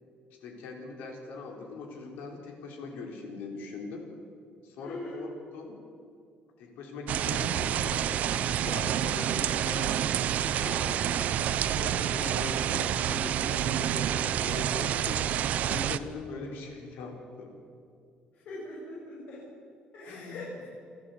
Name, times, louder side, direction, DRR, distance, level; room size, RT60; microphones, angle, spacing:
voice 1, 0.4-4.1 4.6-5.8 6.6-10.1 11.1-15.3 15.7-17.6 20.0-20.6, left 3 dB, 75° left, 2 dB, 4.5 m, -41 dB
voice 2, 4.8-5.2 10.6-11.1 18.5-19.4 19.9-20.6, left 1 dB, 60° left, -6 dB, 6.9 m, -41 dB
sound 1, 7.1-16.0, right 10 dB, 50° right, 0.7 m, -28 dB
28.0 x 13.0 x 8.2 m, 2.5 s
cardioid pair, 165°, 3 cm